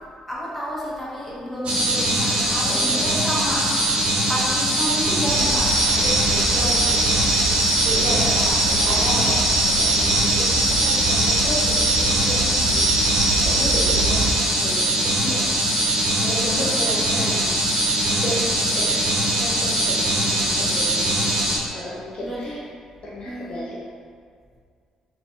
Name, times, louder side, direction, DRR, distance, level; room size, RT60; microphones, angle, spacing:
voice 1, 0.3-5.7 6.5-6.9 7.8-9.4 9.9-10.6 16.5-17.2 22.2-22.6 23.2-23.6, equal, 5° left, -7 dB, 1.0 m, -31 dB
sound 1, 1.6-21.6, right 1 dB, 45° right, 0.8 m, -22 dB
sound 2, 5.3-14.3, right 2 dB, 70° right, 0.5 m, -23 dB
voice 2, 5.9-8.2 8.7-9.1 9.8-12.9 13.4-14.2 14.6-15.5 16.2-17.5 18.0-19.0 19.3-22.6 23.0-23.9, left 1 dB, 40° left, -6 dB, 0.5 m, -34 dB
3.8 x 2.3 x 2.8 m, 2.1 s
figure-of-eight pair, 45°, 3 cm